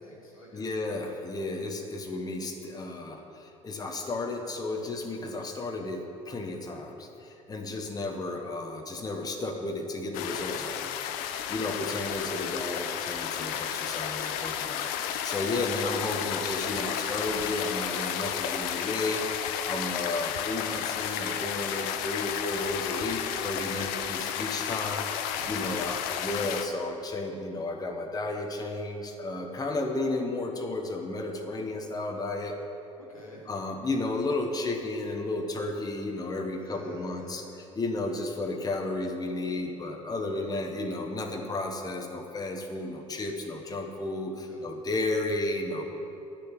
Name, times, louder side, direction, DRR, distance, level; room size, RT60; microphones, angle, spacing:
voice 1, 0.0-0.8 10.4-10.9 23.5-24.6 25.3-26.2 33.0-33.5 35.9-37.6 40.2-40.6 44.5-44.6, equal, 90° left, -5 dB, 2.3 m, -50 dB
voice 2, 0.5-10.9 11.5-32.6 33.5-37.4 37.7-45.8, left 2 dB, 20° left, 2 dB, 1.2 m, -33 dB
sound 1, 10.1-26.6, left 9 dB, 60° left, 0.7 m, -32 dB
9.9 x 6.6 x 8.6 m, 2.9 s
figure-of-eight pair, 65°, 17 cm